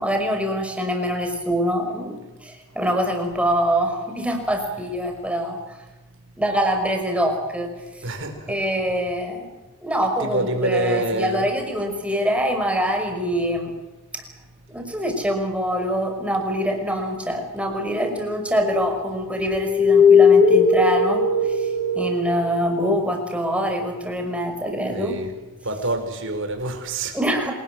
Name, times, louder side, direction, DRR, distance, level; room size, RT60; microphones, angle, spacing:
voice 1, 0.0-5.6 6.4-8.0 8.5-9.5 9.8-13.7 14.1-14.2 14.7-25.2 27.1-27.5, equal, 5° right, 3 dB, 5.6 m, -24 dB
voice 2, 8.0-8.6 10.2-11.4 24.9-25.3 25.6-27.2, right 2 dB, 60° right, 6 dB, 4.9 m, -26 dB
sound 1, 18.6-19.0 19.3-22.4, left 4 dB, 45° left, 4.9 m, -17 dB
27.0 x 19.5 x 7.8 m, 1.1 s
head